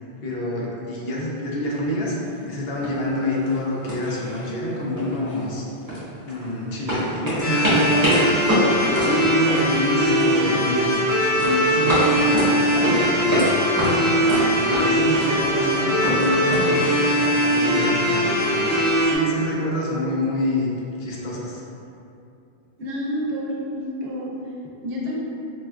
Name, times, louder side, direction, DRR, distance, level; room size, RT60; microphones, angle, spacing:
voice 1, 0.2-5.7 6.3-11.0 11.4-13.5 14.0-20.7 21.0-21.6, left 1 dB, 70° left, -3 dB, 0.8 m, -27 dB
sound 1, 2.3-2.4 2.8-3.1 3.4-3.6 3.9-4.7 5.0-6.4 6.9-10.4 10.6-11.0 11.4-13.5 13.8-16.6, equal, 20° right, 0.9 m, -26 dB
sound 2, 7.4-19.2, equal, 25° left, 0.4 m, -21 dB
voice 2, 22.8-24.5 24.8-25.2, equal, 70° right, -4 dB, 0.8 m, -29 dB
4.2 x 2.2 x 2.3 m, 2.6 s
omnidirectional pair, 1.1 m